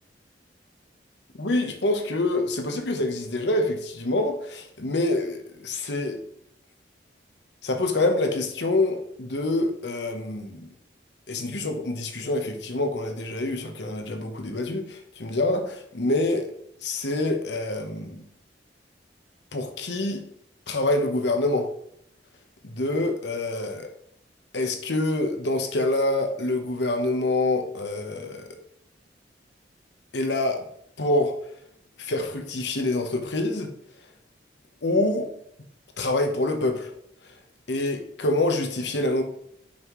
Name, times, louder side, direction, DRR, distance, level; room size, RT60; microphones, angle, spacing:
voice 1, 1.4-6.2 7.6-10.7 11.3-16.5 16.8-18.2 19.5-20.2 20.7-21.7 22.6-23.9 24.5-28.5 30.1-30.6 31.0-31.3 32.0-33.7 34.8-35.3 36.0-36.9 37.7-39.2, left 2 dB, 70° left, 6 dB, 1.0 m, -26 dB
6.3 x 5.5 x 3.1 m, 0.73 s
head